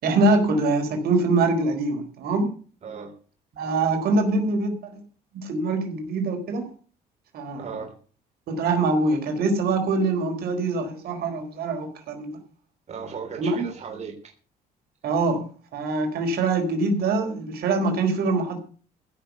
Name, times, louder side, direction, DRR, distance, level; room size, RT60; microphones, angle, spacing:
voice 1, 0.0-2.5 3.5-5.0 5.3-6.7 7.3-7.7 8.5-12.4 13.4-13.6 15.0-15.4 15.7-18.6, right 3 dB, 65° right, 4 dB, 4.3 m, -24 dB
voice 2, 2.8-3.1 7.6-7.9 12.9-14.3, right 6 dB, 40° right, 2 dB, 3.5 m, -36 dB
16.0 x 6.9 x 8.1 m, 0.40 s
cardioid pair, 110°, 17 cm